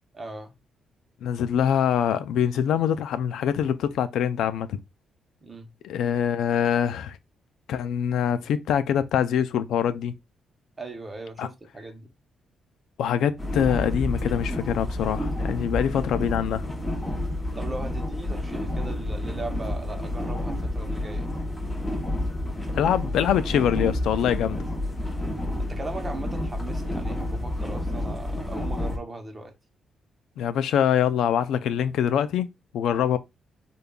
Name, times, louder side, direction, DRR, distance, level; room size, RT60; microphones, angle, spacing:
voice 1, 0.1-0.5 5.4-5.7 10.8-12.1 17.5-21.3 25.6-29.5, right 2 dB, 20° right, 0.8 m, -38 dB
voice 2, 1.2-4.8 5.8-7.2 7.7-10.1 11.4-11.5 13.0-16.6 22.7-24.6 30.4-33.2, left 9 dB, 85° left, 0.3 m, -24 dB
sound 1, 13.4-29.0, left 1 dB, 10° left, 0.9 m, -30 dB
5.0 x 2.3 x 2.3 m
cardioid pair, 145°, 0 cm